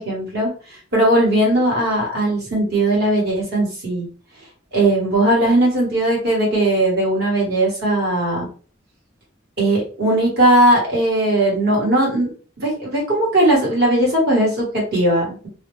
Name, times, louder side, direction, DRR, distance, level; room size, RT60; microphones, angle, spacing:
voice 1, 0.0-4.1 4.7-8.5 9.6-12.3 12.6-15.5, right 1 dB, 55° right, -3 dB, 1.4 m, -18 dB
2.6 x 2.1 x 3.1 m, 0.39 s
head